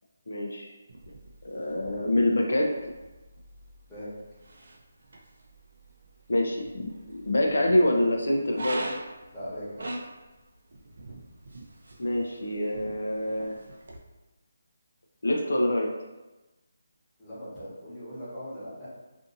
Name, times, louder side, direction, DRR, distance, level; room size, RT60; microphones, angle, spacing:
voice 1, 0.3-0.7 1.4-2.9 6.3-8.8 12.0-13.6 15.2-15.9, left 1 dB, 80° left, 0 dB, 0.4 m, -26 dB
sound 1, 0.9-14.0, right 2 dB, 65° right, 0.5 m, -43 dB
voice 2, 9.3-9.8 17.2-18.9, equal, 5° left, -14 dB, 1.1 m, -39 dB
2.5 x 2.5 x 2.5 m, 1.1 s
figure-of-eight pair, 165°, 0 cm